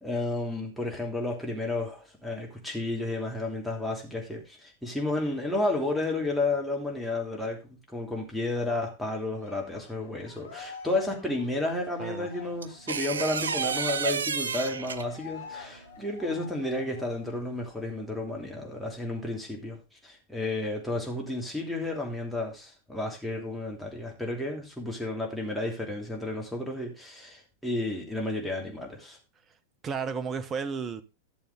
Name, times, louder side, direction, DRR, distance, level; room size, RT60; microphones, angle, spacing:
voice 1, 0.0-29.2, left 2 dB, ahead, 3.0 m, -32 dB
Cheering, 9.3-17.3 17.7-17.9 18.2-19.2, left 5 dB, 70° left, 2.1 m, -48 dB
sound 1, 12.6-15.3 17.0-17.3, right 6 dB, 70° right, 0.5 m, -30 dB
voice 2, 29.8-31.0, right 6 dB, 25° right, 1.0 m, -32 dB
11.5 x 7.1 x 3.7 m
figure-of-eight pair, 90°, 0 cm